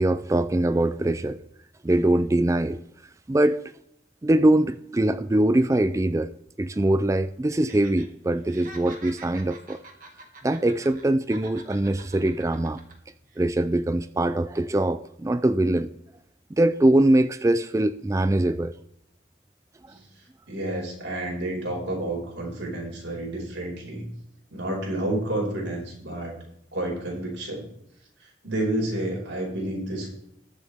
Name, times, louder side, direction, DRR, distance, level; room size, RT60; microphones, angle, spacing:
voice 1, 0.0-1.4 1.8-2.8 3.3-3.6 4.2-6.3 6.6-9.8 10.4-12.8 13.4-15.9 16.5-18.7 19.8-19.9, right 1 dB, 15° right, 12 dB, 0.3 m, -22 dB
Laughter, 7.5-8.1 8.4-11.0 11.3-12.9 13.3-13.4, right 3 dB, 45° right, 2.0 m, -46 dB
voice 2, 20.5-24.1 24.5-26.3 26.7-27.7 28.4-30.1, right 1 dB, 90° right, -1 dB, 5.2 m, -30 dB
20.5 x 7.5 x 3.5 m, 0.76 s
head